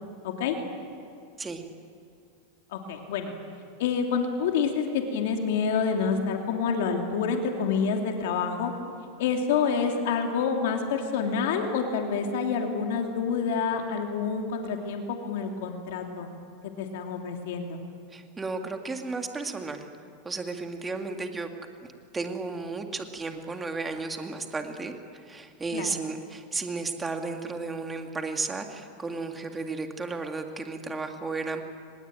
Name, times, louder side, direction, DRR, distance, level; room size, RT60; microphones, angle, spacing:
voice 1, 0.2-0.6 2.7-3.3 3.8-8.7 9.2-16.3 16.6-17.8 25.7-26.0, left 6 dB, 70° left, 3 dB, 2.9 m, -28 dB
voice 2, 18.1-19.9 20.2-21.5 22.1-31.6, right 3 dB, 15° right, 5 dB, 2.0 m, -33 dB
24.5 x 20.5 x 9.0 m, 2.4 s
supercardioid pair, 140°, 0 cm